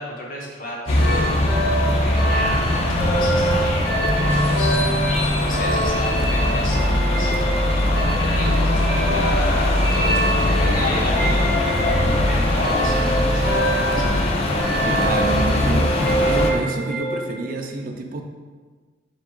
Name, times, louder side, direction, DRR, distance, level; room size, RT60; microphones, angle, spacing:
voice 1, 0.0-7.8 8.2-11.7 12.0-14.2, left 1 dB, 50° left, -2 dB, 0.8 m, -33 dB
sound 1, 0.9-16.5, left 1 dB, 35° left, 0.4 m, -21 dB
sound 2, 1.0-17.4, right 1 dB, 10° right, 0.8 m, -25 dB
voice 2, 14.8-15.9 16.2-18.2, right 3 dB, 50° right, 3 dB, 0.4 m, -28 dB
7.3 x 2.4 x 2.2 m, 1.4 s
head